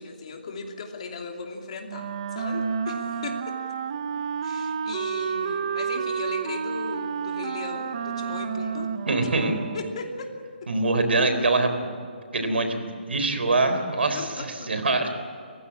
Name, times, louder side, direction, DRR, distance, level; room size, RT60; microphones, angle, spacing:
voice 1, 0.0-3.6 4.4-8.9 9.7-10.7 14.1-14.9, left 4 dB, 35° left, 2 dB, 2.7 m, -37 dB
Wind instrument woodwind instrument, 1.9-10.1, right 6 dB, 30° right, 0.7 m, -30 dB
voice 2, 9.1-9.6 10.7-11.9 12.3-15.1, right 3 dB, 85° right, 7 dB, 3.9 m, -24 dB
28.0 x 15.5 x 8.6 m, 2.2 s
hypercardioid pair, 175°, 6 cm